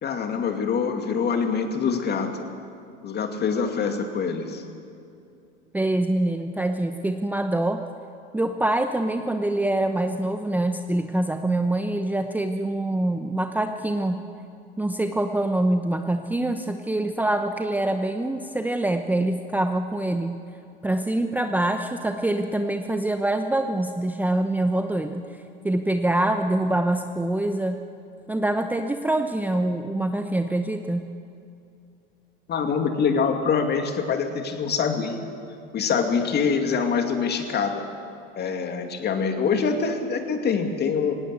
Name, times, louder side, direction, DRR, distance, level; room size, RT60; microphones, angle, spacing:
voice 1, 0.0-2.4 3.0-4.6 32.5-35.2 35.7-37.8 38.4-41.1, left 5 dB, 35° left, 5 dB, 2.5 m, -25 dB
voice 2, 5.7-7.8 8.3-14.2 14.8-20.4 20.8-25.3 25.6-27.8 28.3-31.1, right 1 dB, 5° right, 6 dB, 0.9 m, -25 dB
18.0 x 18.0 x 8.3 m, 2.5 s
hypercardioid pair, 90°, 30 cm